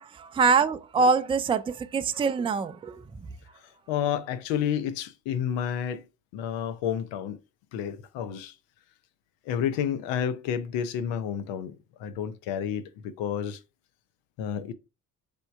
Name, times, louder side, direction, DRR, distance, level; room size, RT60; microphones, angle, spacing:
voice 1, 0.0-3.2, right 5 dB, 15° right, 0.4 m, -25 dB
voice 2, 3.6-6.0 6.3-7.4 7.7-8.5 9.4-13.6 14.4-14.7, left 9 dB, 75° left, 0.7 m, -30 dB
3.7 x 3.5 x 3.4 m
hypercardioid pair, 50°, 44 cm